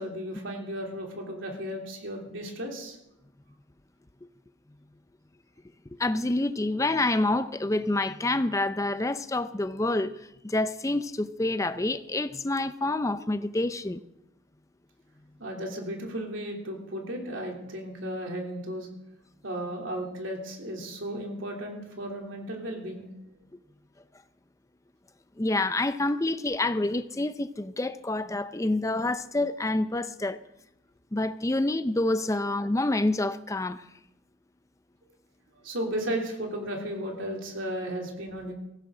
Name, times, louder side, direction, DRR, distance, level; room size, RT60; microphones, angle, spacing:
voice 1, 0.0-3.0 15.4-18.9 19.4-23.1 35.6-38.5, equal, 65° right, 0 dB, 3.1 m, -34 dB
voice 2, 6.0-14.0 25.4-30.4 31.1-33.8, left 2 dB, 15° left, 12 dB, 0.5 m, -27 dB
17.5 x 15.0 x 3.8 m, 0.86 s
head